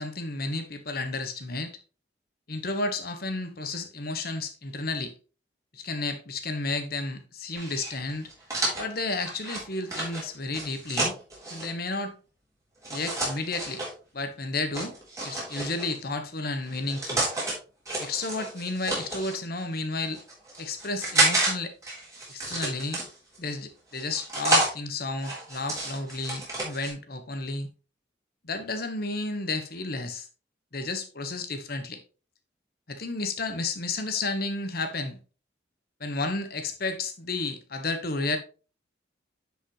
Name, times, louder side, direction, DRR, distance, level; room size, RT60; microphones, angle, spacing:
voice 1, 0.0-1.7 2.5-5.1 5.7-8.3 8.8-11.2 11.5-12.1 12.9-13.8 14.1-14.9 15.2-17.3 18.0-20.2 20.6-21.7 22.3-23.0 23.4-27.7 28.4-30.3 30.7-32.0 32.9-35.2 36.0-38.4, left 3 dB, 50° left, 1.3 m, -32 dB
sound 1, 7.6-11.7 12.8-13.9 14.7-16.0 16.7-17.5 17.9-19.4 20.0-21.5 21.8-23.4 23.9-24.7 25.2-26.9, right 2 dB, 15° right, 3.6 m, -29 dB
10.0 x 5.3 x 3.2 m
head